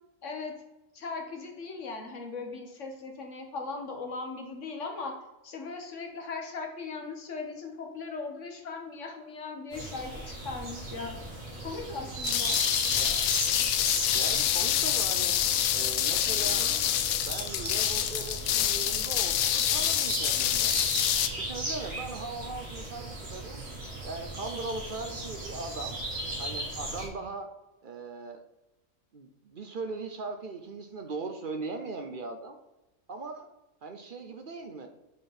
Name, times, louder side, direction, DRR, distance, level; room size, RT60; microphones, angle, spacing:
voice 1, 0.2-0.6 0.9-5.2 5.4-11.2 11.6-12.6, left 4 dB, 65° left, 3 dB, 1.4 m, -38 dB
sound 1, 9.7-27.1, right 2 dB, 65° right, 2.2 m, -37 dB
sound 2, 12.2-21.3, left 11 dB, 90° left, 1.0 m, -27 dB
voice 2, 13.0-13.3 14.1-15.4 15.7-16.7 17.1-20.8 21.4-23.6 24.0-26.0 26.4-27.5 27.8-28.4 29.1-32.6 33.1-33.5 33.8-34.9, right 3 dB, 50° right, 6 dB, 0.7 m, -39 dB
8.5 x 4.0 x 4.2 m, 0.99 s
omnidirectional pair, 1.4 m